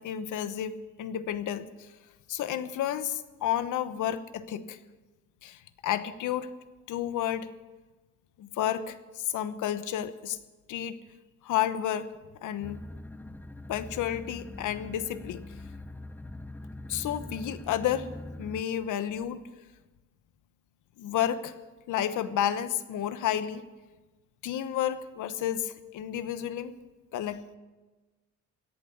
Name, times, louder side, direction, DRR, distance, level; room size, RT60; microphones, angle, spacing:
voice 1, 0.0-1.9 2.3-4.8 5.4-6.5 6.9-7.5 8.4-10.4 10.7-11.0 11.4-12.1 12.4-12.8 13.7-15.4 16.9-18.1 18.4-19.4 21.0-21.5 21.9-23.6 24.4-26.7 27.1-27.6, left 10 dB, 80° left, 12 dB, 1.1 m, -31 dB
sound 1, 12.6-18.6, left 2 dB, 5° left, 0.5 m, -43 dB
17.0 x 11.0 x 7.2 m, 1.2 s
cardioid pair, 90°, 30 cm